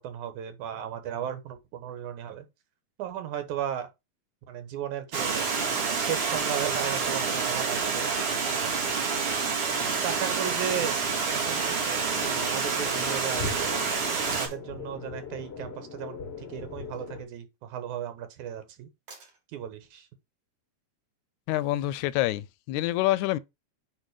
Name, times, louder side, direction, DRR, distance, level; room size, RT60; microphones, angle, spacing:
voice 1, 0.0-2.5 3.0-3.9 4.5-5.5 6.0-8.8 10.0-11.0 11.3-13.7 14.4-18.9 19.5-20.1, right 10 dB, 85° right, 2.6 m, -35 dB
Water, 5.1-14.5, right 5 dB, 50° right, 2.8 m, -28 dB
sound 1, 9.9-10.2 12.4-12.5 14.3-14.6 16.7-17.1 19.1-19.6 21.7-21.8, right 4 dB, 70° right, 4.9 m, -47 dB
sound 2, 12.1-17.2, left 4 dB, 65° left, 0.6 m, -40 dB
voice 2, 21.5-23.4, left 15 dB, 85° left, 1.9 m, -27 dB
8.9 x 3.2 x 4.8 m
omnidirectional pair, 3.4 m